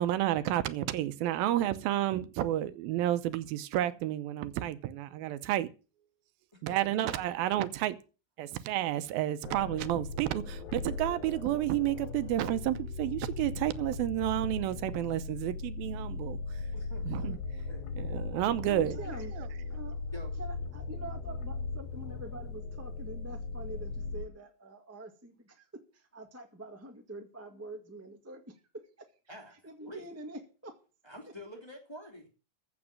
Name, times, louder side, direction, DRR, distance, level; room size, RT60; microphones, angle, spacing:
voice 1, 0.0-5.7 6.6-8.0 8.4-16.4 17.1-17.4 18.0-19.0 19.4-19.5, right 13 dB, 85° right, 2.7 m, -31 dB
voice 2, 6.5-7.0 16.7-17.4 17.7-18.3 19.0-19.3 20.1-20.3 29.3-29.6 29.8-30.1 31.0-32.3, equal, 10° left, 2.2 m, -48 dB
sound 1, 9.4-24.3, left 4 dB, 60° left, 2.0 m, -38 dB
voice 3, 18.6-19.3 19.7-20.0 20.4-29.3 29.6-30.8, right 2 dB, 15° right, 0.5 m, -46 dB
15.0 x 6.1 x 7.4 m
omnidirectional pair, 4.1 m